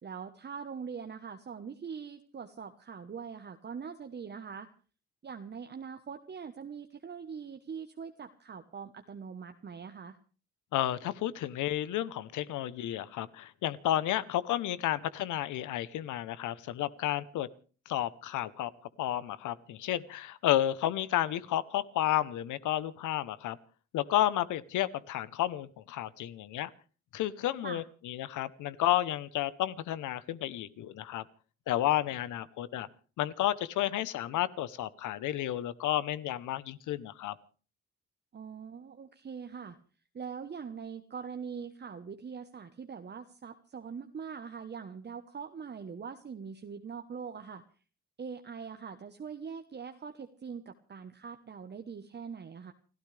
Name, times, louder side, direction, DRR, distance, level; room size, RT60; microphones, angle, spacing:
voice 1, 0.0-4.7 5.2-10.2 27.6-27.8 38.3-39.8 40.1-47.6 48.2-52.7, right 6 dB, 35° right, 6 dB, 1.1 m, -42 dB
voice 2, 10.7-17.5 17.9-18.7 19.0-23.6 23.9-26.7 27.1-31.2 31.7-32.9 33.2-37.3, left 13 dB, 85° left, 17 dB, 1.0 m, -31 dB
29.5 x 13.5 x 3.4 m, 0.38 s
cardioid pair, 90°, 30 cm